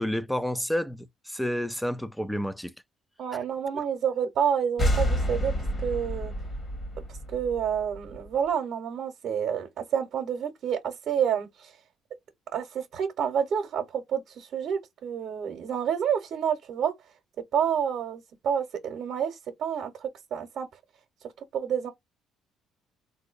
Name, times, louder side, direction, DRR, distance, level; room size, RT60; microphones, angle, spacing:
voice 1, 0.0-2.7, equal, 5° left, 0.4 m, -30 dB
voice 2, 3.2-5.5 5.8-6.3 7.3-11.7 12.5-16.9 17.5-20.7 21.5-21.9, right 8 dB, 65° right, 0.8 m, -29 dB
sound 1, 4.8-8.3, equal, 35° left, 1.3 m, -29 dB
3.6 x 2.7 x 2.5 m
cardioid pair, 95°, 0 cm